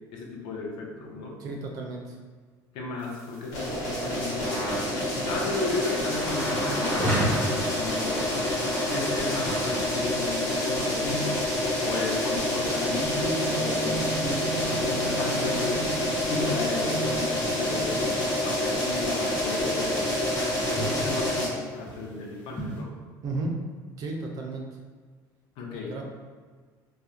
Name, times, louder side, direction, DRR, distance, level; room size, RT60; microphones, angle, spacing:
voice 1, 0.1-1.4 2.7-5.0 5.2-8.3 8.9-11.4 11.8-16.0 16.2-18.0 18.4-20.1 20.6-23.0 25.6-25.9, left 3 dB, 65° left, 0 dB, 0.5 m, -34 dB
voice 2, 1.4-2.2 17.4-17.5 23.2-23.5 24.0-24.6 25.7-26.0, right 3 dB, 40° right, 1 dB, 0.3 m, -33 dB
sound 1, 3.0-10.3 11.4-18.0, right 2 dB, 85° left, 1.1 m, -39 dB
sound 2, 3.5-21.5, left 1 dB, 45° left, 0.9 m, -28 dB
sound 3, 6.4-22.8, equal, 15° left, 0.5 m, -37 dB
2.4 x 2.0 x 2.8 m, 1.5 s
cardioid pair, 170°, 9 cm